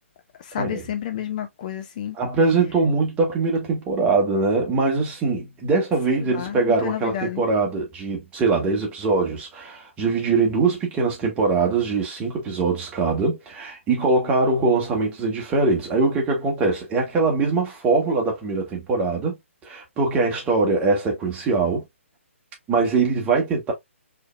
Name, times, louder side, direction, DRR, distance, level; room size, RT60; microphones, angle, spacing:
voice 1, 0.4-2.2 6.1-7.4, left 10 dB, 35° left, 0.5 m, -30 dB
voice 2, 2.1-19.4 19.6-21.8 22.7-23.7, right 3 dB, 15° right, 1.5 m, -22 dB
4.5 x 3.3 x 2.2 m
figure-of-eight pair, 135°, 7 cm